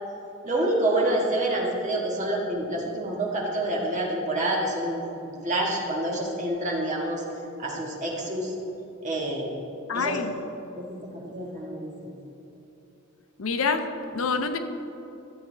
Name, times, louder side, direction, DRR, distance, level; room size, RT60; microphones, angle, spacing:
voice 1, 0.4-7.2 7.6-8.5 9.0-9.6 9.9-10.2 10.7-12.1, right 1 dB, 35° right, -2 dB, 1.6 m, -28 dB
voice 2, 9.9-10.3 13.4-13.9 14.1-14.6, left 5 dB, 75° left, 8 dB, 0.6 m, -26 dB
13.5 x 8.1 x 3.3 m, 2.9 s
head